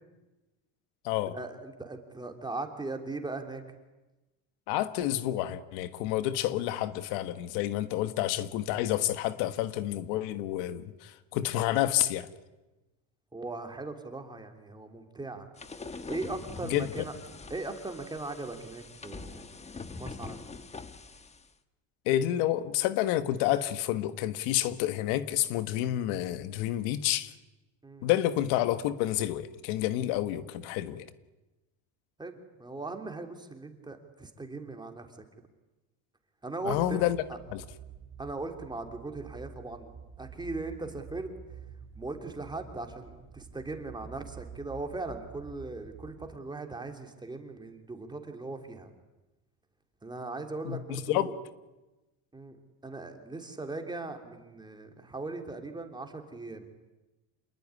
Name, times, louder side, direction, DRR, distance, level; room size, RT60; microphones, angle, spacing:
voice 1, 1.3-3.6 13.3-15.5 16.0-17.1 17.5-19.4 20.0-20.4 27.8-28.1 32.2-35.1 36.4-37.4 38.2-41.3 42.0-48.9 50.0-51.3 52.3-52.6 52.8-56.7, right 3 dB, 10° right, 4 dB, 3.5 m, -39 dB
voice 2, 4.7-12.3 16.6-16.9 22.0-27.3 28.0-31.1 36.6-37.2 37.5-37.6 50.6-51.3, left 13 dB, 80° left, 12 dB, 1.6 m, -29 dB
sound 1, 15.6-21.5, left 4 dB, 15° left, 1.3 m, -44 dB
sound 2, 36.7-46.4, right 7 dB, 30° right, 2.4 m, -49 dB
27.5 x 20.5 x 9.9 m, 1.1 s
cardioid pair, 125°, 38 cm